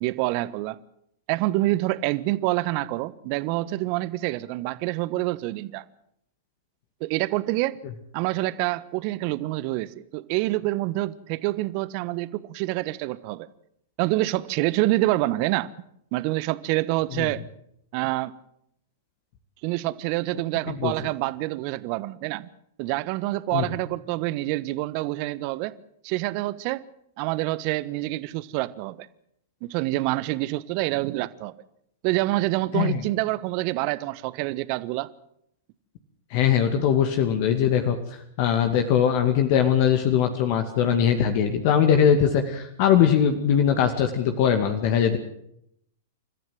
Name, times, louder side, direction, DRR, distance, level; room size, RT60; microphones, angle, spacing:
voice 1, 0.0-0.8 1.3-5.8 7.0-7.8 8.1-13.5 14.0-15.7 16.1-17.4 17.9-18.3 19.6-22.5 22.8-25.7 26.0-26.8 27.2-29.1 29.6-31.5 32.0-35.1, right 18 dB, 45° right, 1.3 m, -27 dB
voice 2, 36.3-45.2, left 8 dB, 50° left, 2.3 m, -21 dB
29.5 x 14.5 x 7.8 m
hypercardioid pair, 105°, 0 cm